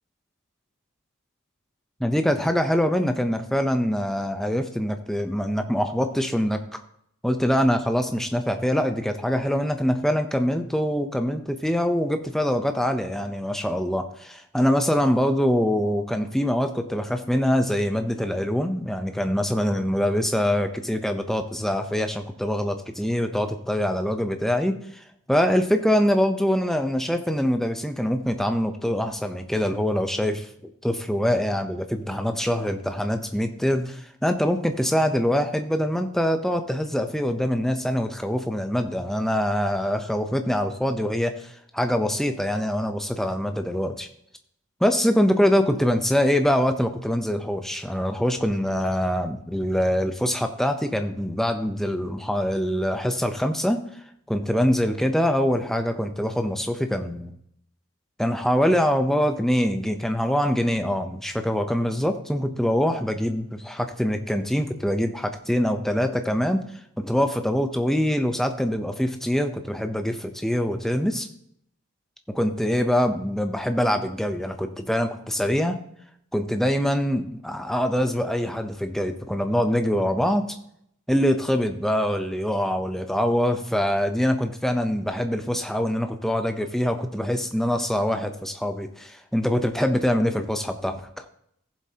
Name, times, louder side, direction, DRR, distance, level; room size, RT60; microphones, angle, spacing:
voice 1, 2.0-6.8 7.2-24.7 25.3-30.5 30.8-44.1 44.8-53.8 54.3-57.3 58.2-66.6 67.0-71.3 72.3-75.8 76.3-80.4 81.1-91.0, equal, ahead, 6 dB, 0.6 m, -24 dB
15.0 x 7.4 x 2.9 m, 0.72 s
head